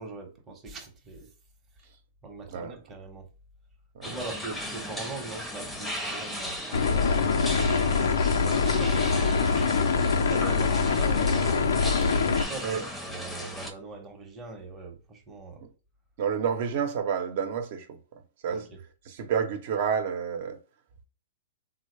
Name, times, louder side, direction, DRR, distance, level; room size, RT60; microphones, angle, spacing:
voice 1, 0.0-1.3 2.2-3.3 4.0-9.5 10.2-15.6 18.5-18.8, right 3 dB, 20° right, 0.9 m, -41 dB
sound 1, 4.0-13.7, equal, 5° left, 0.7 m, -36 dB
sound 2, 6.7-12.5, left 5 dB, 80° left, 0.4 m, -24 dB
voice 2, 16.2-18.6 19.1-20.6, right 7 dB, 55° right, 0.8 m, -30 dB
3.5 x 2.1 x 3.2 m
hypercardioid pair, 140°, 0 cm